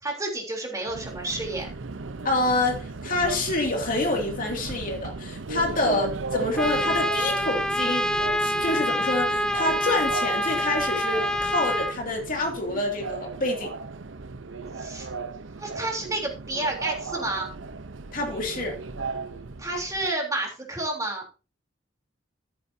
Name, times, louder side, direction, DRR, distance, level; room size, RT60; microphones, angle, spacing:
voice 1, 0.0-1.7 5.8-6.0 14.8-15.1 15.6-17.5 19.6-21.2, right 2 dB, 20° right, 3.5 m, -30 dB
Subway metro underground, 0.9-20.1, right 4 dB, 85° right, 0.8 m, -36 dB
voice 2, 2.2-8.1 8.4-13.7 18.1-18.8, left 2 dB, 45° left, 2.6 m, -27 dB
Trumpet, 6.6-11.9, equal, 5° left, 0.7 m, -26 dB
13.5 x 9.2 x 2.8 m
head